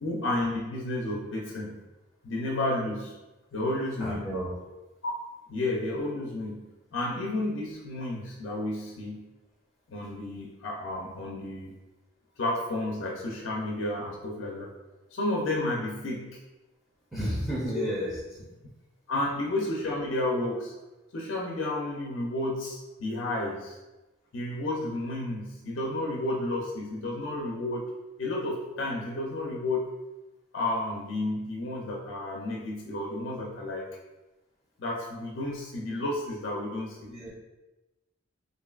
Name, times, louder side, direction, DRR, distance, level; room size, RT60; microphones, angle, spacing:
voice 1, 0.0-1.8 2.2-3.2 3.5-4.3 5.0-5.1 5.5-6.6 6.9-9.2 9.9-11.7 12.4-14.7 15.1-16.4 17.7-18.1 19.1-20.7 21.1-23.8 24.3-27.9 28.2-29.9 30.5-33.9 34.8-37.1, left 2 dB, 60° left, -1 dB, 0.4 m, -31 dB
voice 2, 4.0-4.5 17.1-18.2 37.1-37.3, right 1 dB, 5° right, -9 dB, 0.5 m, -31 dB
3.1 x 2.5 x 2.3 m, 1.1 s
head